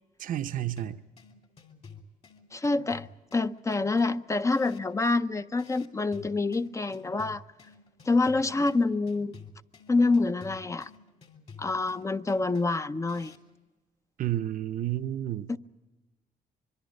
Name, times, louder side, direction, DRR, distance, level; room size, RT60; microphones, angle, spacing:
voice 1, 0.2-1.0 14.2-15.5, right 12 dB, 60° right, 0.7 m, -31 dB
sound 1, 0.5-13.5, left 5 dB, 45° left, 3.0 m, -52 dB
voice 2, 2.5-3.1 3.3-7.4 8.0-9.3 9.9-10.9 11.6-13.3 15.5-15.6, left 3 dB, 20° left, 0.6 m, -26 dB
25.0 x 23.0 x 5.3 m
cardioid pair, 115°, 15 cm